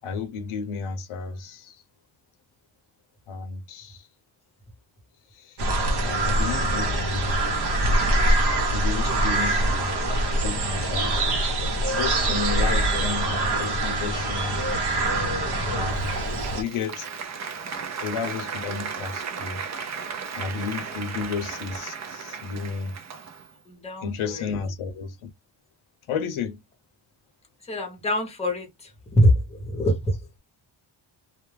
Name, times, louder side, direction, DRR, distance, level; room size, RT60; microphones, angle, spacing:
voice 1, 0.0-1.8 3.3-4.1 5.3-5.6 6.0-7.4 8.7-9.9 10.4-11.3 11.9-14.8 15.7-16.1 16.6-17.1 18.0-19.6 20.3-22.9 24.0-25.3 26.1-26.6, left 5 dB, 85° left, 0.7 m, -32 dB
sound 1, 5.6-16.6, right 1 dB, 55° right, 0.8 m, -24 dB
Applause, 16.0-23.6, right 6 dB, 40° right, 0.4 m, -35 dB
voice 2, 23.7-24.5 27.6-30.4, equal, 15° left, 0.7 m, -25 dB
2.2 x 2.1 x 3.1 m
wide cardioid pair, 160°, 48 cm